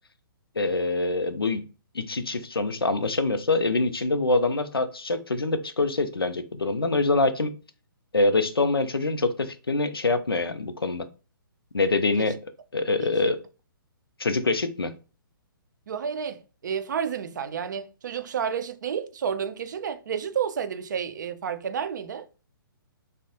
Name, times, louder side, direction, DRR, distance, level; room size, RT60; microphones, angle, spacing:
voice 1, 0.6-1.6 1.9-7.6 8.1-11.1 11.7-12.4 12.7-13.4 14.2-14.9, left 3 dB, 85° left, 0.4 m, -25 dB
voice 2, 13.0-13.3 15.9-22.3, right 7 dB, 55° right, 0.4 m, -31 dB
3.3 x 2.0 x 2.7 m
figure-of-eight pair, 130°, 12 cm